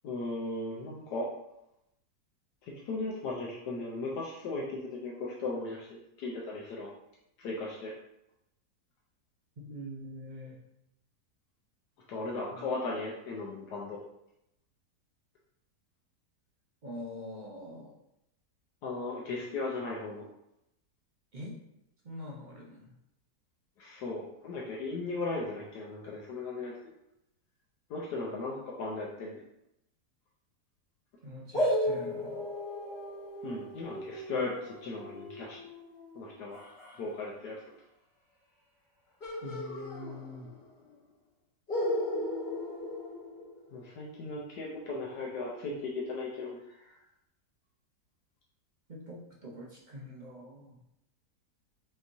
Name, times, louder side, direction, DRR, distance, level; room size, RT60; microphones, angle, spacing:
voice 1, 0.0-1.3 2.6-6.9 7.4-7.9 12.1-14.0 18.8-20.3 23.8-26.9 27.9-29.4 33.4-35.6 36.1-36.6 37.0-37.6 43.7-46.9, left 3 dB, 75° left, -3 dB, 1.3 m, -37 dB
voice 2, 9.6-10.6 12.5-12.6 16.8-17.9 21.3-21.6 22.0-22.9 31.2-32.5 39.4-40.5 48.9-50.8, left 1 dB, 55° right, -4 dB, 0.5 m, -44 dB
sound 1, 31.5-37.0 39.2-40.7 40.9-41.0 41.7-43.9, left 1 dB, 40° left, 1.7 m, -35 dB
5.5 x 3.0 x 2.7 m, 0.84 s
omnidirectional pair, 1.8 m